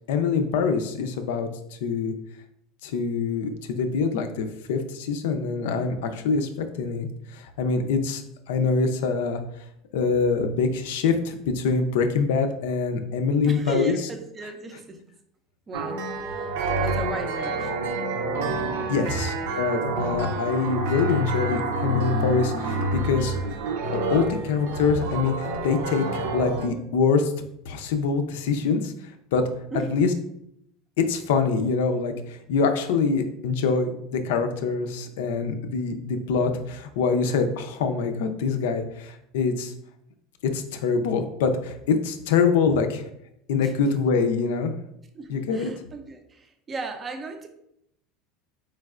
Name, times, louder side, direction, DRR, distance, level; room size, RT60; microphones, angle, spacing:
voice 1, 0.1-2.1 2.8-6.5 6.8-8.2 8.5-9.4 9.9-13.9 18.9-23.4 24.1-27.3 27.6-28.9 29.3-29.4 29.7-30.1 31.1-39.7 40.5-43.0 43.5-44.7 45.3-45.7, left 5 dB, 85° left, 7 dB, 0.5 m, -25 dB
voice 2, 13.4-15.0 15.7-17.7 18.9-19.2 29.7-30.0 43.6-43.8 45.1-47.5, right 3 dB, 20° right, 6 dB, 0.4 m, -35 dB
sound 1, 15.7-26.7, right 2 dB, 80° right, 0.6 m, -28 dB
4.5 x 3.2 x 2.4 m, 0.76 s
cardioid pair, 170°, 0 cm